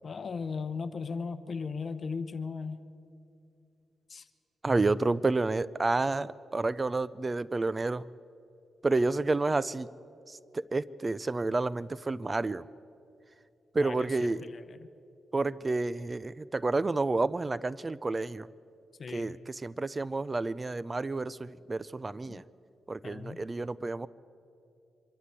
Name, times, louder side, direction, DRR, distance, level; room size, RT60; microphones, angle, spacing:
voice 1, 0.0-2.8 4.1-4.3 13.8-14.9 19.0-19.3 22.3-22.4 23.0-23.4, left 5 dB, 50° left, 11 dB, 0.9 m, -37 dB
voice 2, 4.6-8.0 8.8-9.9 10.3-12.6 13.7-14.4 15.3-18.5 19.1-22.4 22.9-24.1, right 3 dB, 25° right, 19 dB, 0.4 m, -30 dB
25.0 x 12.5 x 8.2 m, 2.6 s
cardioid pair, 90°, 0 cm